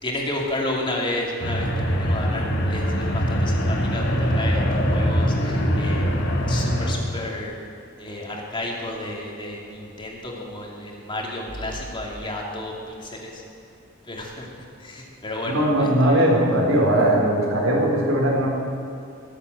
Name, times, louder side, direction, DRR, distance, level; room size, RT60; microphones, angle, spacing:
voice 1, 0.0-4.6 4.9-6.1 6.5-7.6 8.0-12.7 13.0-13.4 14.1-14.5 14.8-15.9, left 1 dB, 25° left, -1 dB, 2.5 m, -31 dB
sound 1, 1.4-6.9, equal, 60° left, 2.2 m, -22 dB
voice 2, 15.4-18.5, right 1 dB, 75° right, -1 dB, 4.0 m, -19 dB
22.5 x 8.2 x 7.8 m, 2.7 s
head